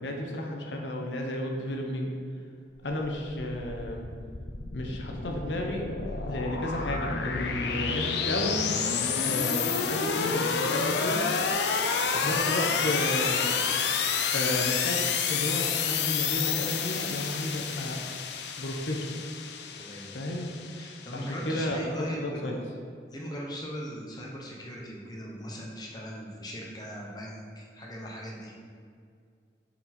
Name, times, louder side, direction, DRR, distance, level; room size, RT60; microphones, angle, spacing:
voice 1, 0.0-2.1 2.8-4.1 4.7-5.9 6.2-8.6 9.2-11.3 12.1-13.6 14.3-18.0 18.6-19.2 20.1-20.5 21.1-22.6, left 1 dB, 85° left, 1 dB, 0.9 m, -32 dB
sound 1, 2.9-21.6, left 6 dB, 70° left, 0.5 m, -29 dB
voice 2, 19.7-20.1 20.8-22.6 23.1-28.5, equal, 20° left, -3 dB, 0.9 m, -39 dB
6.8 x 4.3 x 4.2 m, 2.2 s
head